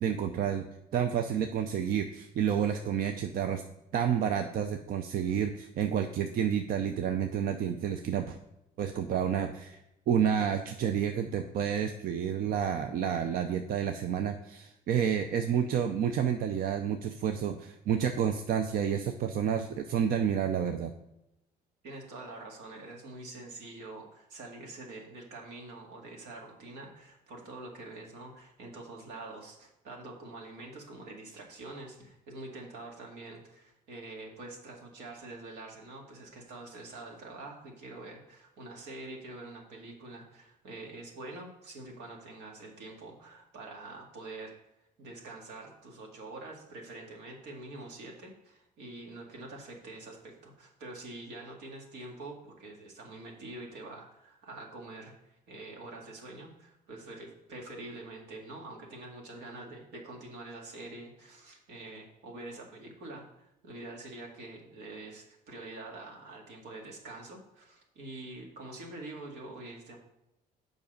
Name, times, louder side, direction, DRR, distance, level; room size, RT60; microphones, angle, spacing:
voice 1, 0.0-0.7 0.9-3.6 3.9-8.4 8.8-9.8 10.1-20.9, right 8 dB, 60° right, 6 dB, 0.6 m, -30 dB
voice 2, 21.8-44.5 45.0-70.0, right 2 dB, 85° right, 0 dB, 2.0 m, -45 dB
7.3 x 5.3 x 5.2 m, 0.87 s
cardioid pair, 110°, 17 cm